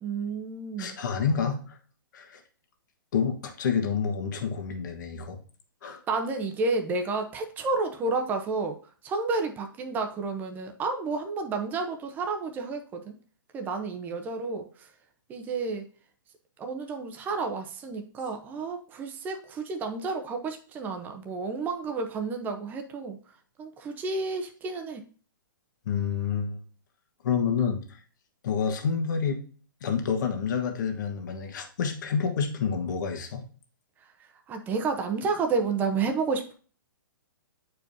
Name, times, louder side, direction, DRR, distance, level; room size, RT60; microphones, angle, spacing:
voice 1, 0.0-1.0 5.8-8.8 9.0-13.1 13.5-14.9 15.3-15.8 16.6-23.2 23.6-25.0 34.5-36.5, right 4 dB, 15° right, 4 dB, 0.7 m, -31 dB
voice 2, 0.8-1.7 2.1-2.4 3.1-5.4 5.8-6.0 25.8-26.6 27.2-28.0 28.4-29.4 29.8-33.4, left 6 dB, 60° left, 4 dB, 1.4 m, -28 dB
8.8 x 4.6 x 2.7 m, 0.40 s
hypercardioid pair, 150°, 12 cm